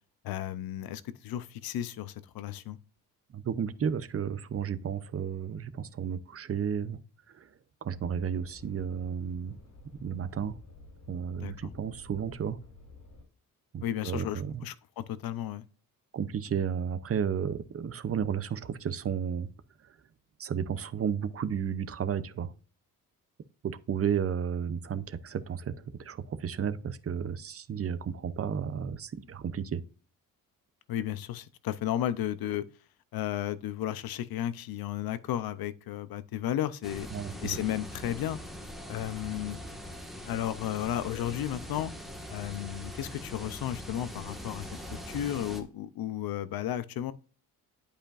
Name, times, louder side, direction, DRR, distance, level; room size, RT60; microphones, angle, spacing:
voice 1, 0.2-2.8 11.4-11.7 13.8-15.6 30.9-32.6 33.1-37.1 37.4-38.4 38.9-39.6 40.3-41.9 42.3-47.1, left 11 dB, 85° left, 0.7 m, -34 dB
voice 2, 3.3-7.0 7.3-7.5 7.8-9.6 10.0-10.6 11.1-12.6 13.7-14.6 16.1-19.5 19.8-20.0 20.4-22.5 23.6-29.8 37.1-37.6, right 7 dB, 40° right, 0.7 m, -33 dB
sound 1, 7.9-13.2, left 2 dB, 50° left, 3.5 m, -52 dB
sound 2, 36.8-45.6, equal, ahead, 1.6 m, -42 dB
11.5 x 5.1 x 2.5 m
cardioid pair, 110°, 36 cm